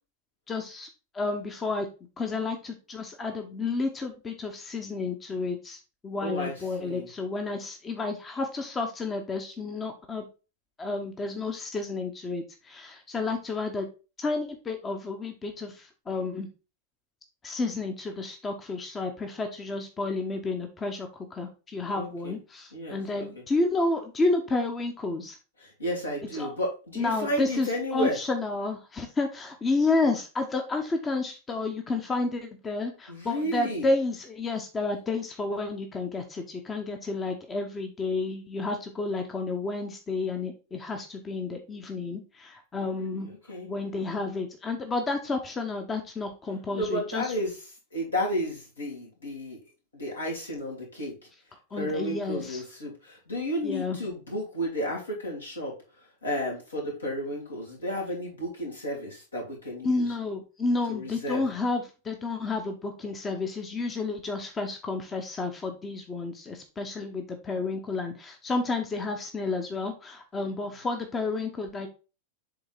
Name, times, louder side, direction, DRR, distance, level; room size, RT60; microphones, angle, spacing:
voice 1, 0.5-0.9 1.1-1.9 2.2-10.2 10.8-13.9 14.2-16.5 17.4-25.4 26.3-26.5 27.0-43.3 43.7-47.3 51.7-52.6 53.6-54.0 59.8-71.9, left 3 dB, 20° left, 5 dB, 0.9 m, -31 dB
voice 2, 6.2-7.1 21.9-22.3 22.7-23.3 25.6-28.2 33.1-33.9 42.8-43.7 46.7-47.5 47.9-49.6 49.9-51.1 51.7-60.1 60.9-61.4, equal, 75° left, -3 dB, 2.8 m, -32 dB
7.7 x 3.6 x 4.1 m, 0.32 s
figure-of-eight pair, 90°, 0 cm